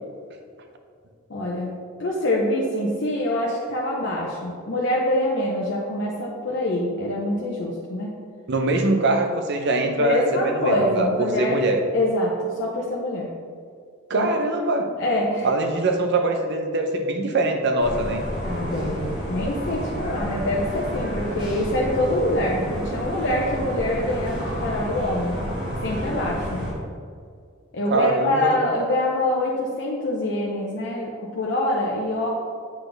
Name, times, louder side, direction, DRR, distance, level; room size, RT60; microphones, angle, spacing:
voice 1, 1.3-1.7 2.0-8.2 10.0-11.6 11.9-13.3 14.1-14.3 15.0-15.5 18.4-25.4 25.8-26.5 27.7-32.3, left 1 dB, 60° left, -5 dB, 0.8 m, -25 dB
voice 2, 8.5-11.8 14.1-14.9 15.4-18.2 27.9-28.6, right 2 dB, 60° right, 4 dB, 0.7 m, -22 dB
sound 1, 17.8-26.7, equal, 25° right, 1.6 m, -30 dB
8.3 x 4.1 x 3.4 m, 2.2 s
head